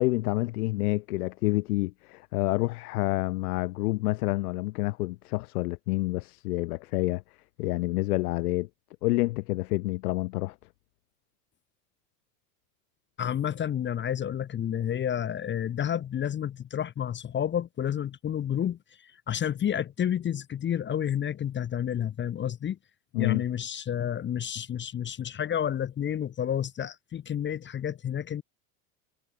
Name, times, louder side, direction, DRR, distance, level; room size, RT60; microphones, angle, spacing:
voice 1, 0.0-7.2 7.6-8.7 9.0-10.5 23.1-23.4, left 20 dB, 75° left, 1.4 m, -28 dB
voice 2, 13.2-22.8 23.2-28.4, left 9 dB, 25° left, 0.8 m, -30 dB
supercardioid pair, 105°, 45 cm